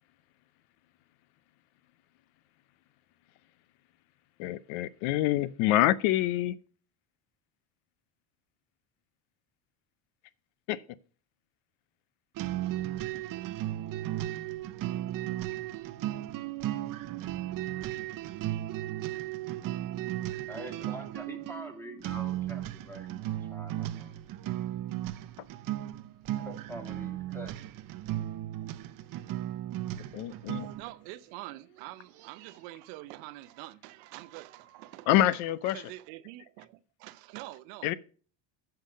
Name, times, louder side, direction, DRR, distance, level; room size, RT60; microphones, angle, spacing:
voice 1, 4.4-6.6 10.7-10.9 29.9-30.7 35.1-35.8 37.8-37.9, left 14 dB, 70° left, 0.6 m, -26 dB
sound 1, 12.4-30.9, right 13 dB, 45° right, 0.6 m, -35 dB
voice 2, 20.5-24.2 26.4-27.5, equal, 5° left, 2.1 m, -45 dB
voice 3, 30.1-35.3 35.6-37.9, right 17 dB, 85° right, 0.7 m, -46 dB
8.8 x 5.8 x 5.0 m
supercardioid pair, 95°, 50 cm